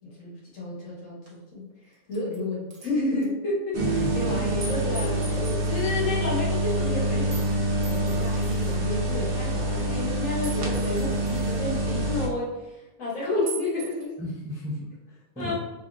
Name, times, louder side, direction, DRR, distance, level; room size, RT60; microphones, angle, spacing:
voice 1, 0.0-14.1 15.4-15.5, left 2 dB, 80° left, -4 dB, 1.5 m, -31 dB
sound 1, 1.3-1.4 1.9-2.4 2.7-2.9 3.2-3.3 4.6-6.1 7.3-7.5 7.8-8.7 10.4-11.6 13.5-14.1, right 4 dB, 80° right, 1.3 m, -41 dB
sound 2, 3.7-12.3, right 1 dB, 50° right, 0.9 m, -26 dB
voice 2, 3.8-4.5 14.2-15.5, equal, 5° right, -4 dB, 0.4 m, -35 dB
3.5 x 3.1 x 2.5 m, 1.1 s
omnidirectional pair, 1.4 m